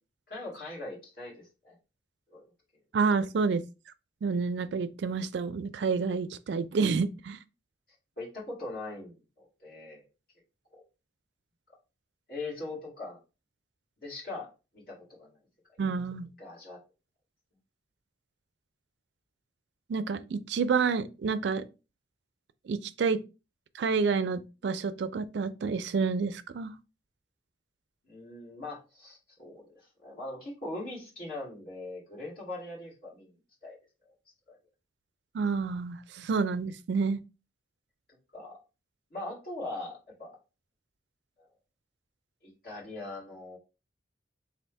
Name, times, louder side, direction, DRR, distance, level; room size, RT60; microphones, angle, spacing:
voice 1, 0.3-1.7 2.3-2.5 8.2-10.0 10.7-10.8 12.3-13.2 14.0-14.5 14.7-15.3 16.4-16.8 28.1-33.3 33.6-33.8 34.5-34.6 38.3-38.6 39.1-40.4 41.4-41.5 42.4-43.6, left 2 dB, 50° left, 2.0 m, -41 dB
voice 2, 2.9-3.6 4.2-7.4 15.8-16.3 19.9-21.6 22.7-23.2 23.7-26.7 35.3-37.2, right 5 dB, 70° right, 0.4 m, -29 dB
3.4 x 2.4 x 4.5 m
head